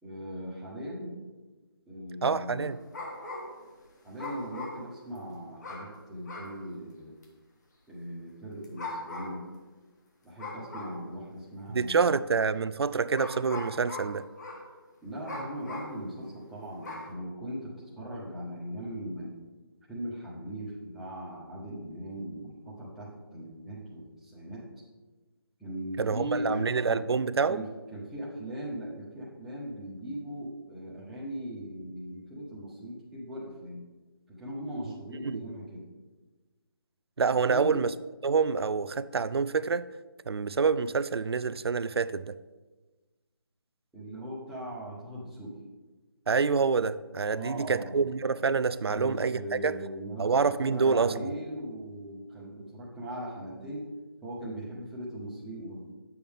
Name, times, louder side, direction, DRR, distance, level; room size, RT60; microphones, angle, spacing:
voice 1, 0.0-1.2 1.9-2.7 4.0-7.1 7.9-9.4 10.2-12.2 15.0-19.3 19.9-24.7 25.6-27.1 27.5-33.8 34.3-35.9 37.5-37.8 43.9-45.6 47.3-48.0 48.9-50.3 50.6-53.9 54.2-55.8, right 1 dB, ahead, 1.2 m, -39 dB
voice 2, 2.2-2.8 11.7-14.3 26.0-27.6 35.2-35.4 37.2-37.9 38.2-39.9 40.3-42.3 46.3-49.8 50.2-51.3, right 5 dB, 85° right, 0.4 m, -27 dB
sound 1, 2.6-3.7 4.2-5.2 5.6-5.9 6.2-6.6 7.2-7.3 8.6-9.5 10.4-11.1 11.9-12.0 13.1-14.7 15.2-16.0 16.8-17.1, left 2 dB, 45° left, 1.7 m, -40 dB
9.2 x 7.0 x 3.6 m
hypercardioid pair, 165°, 13 cm